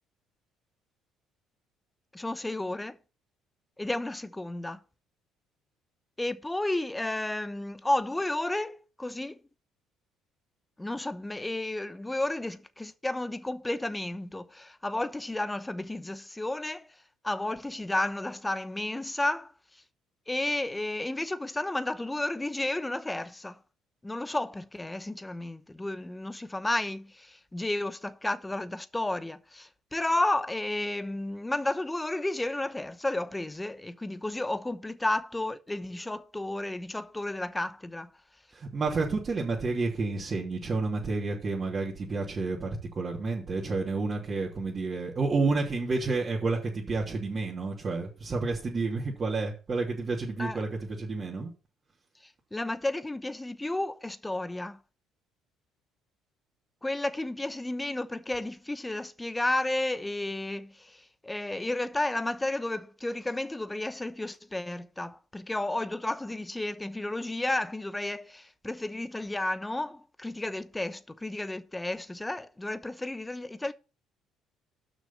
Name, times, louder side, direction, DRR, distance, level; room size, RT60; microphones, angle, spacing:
voice 1, 2.1-3.0 3.8-4.8 6.2-9.4 10.8-16.9 17.2-19.5 20.3-23.6 24.0-38.1 50.4-50.6 52.5-54.8 56.8-73.7, left 2 dB, 10° left, 1.0 m, -32 dB
voice 2, 38.5-51.5, right 3 dB, 40° right, 3.0 m, -30 dB
6.4 x 6.1 x 7.4 m
supercardioid pair, 75°, 0 cm